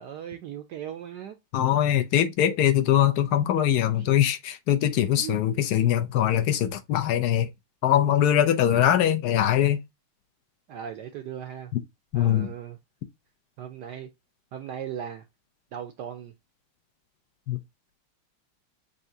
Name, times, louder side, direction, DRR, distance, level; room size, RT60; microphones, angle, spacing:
voice 1, 0.0-1.4 4.0-4.1 5.2-5.4 10.7-11.7 12.1-12.8 13.6-14.1 14.5-15.2 15.7-16.3, right 9 dB, 75° right, 1.0 m, -37 dB
voice 2, 1.5-7.5 7.8-9.8 12.1-12.5 17.5-17.6, left 11 dB, 75° left, 0.9 m, -22 dB
6.9 x 2.7 x 2.6 m
omnidirectional pair, 2.4 m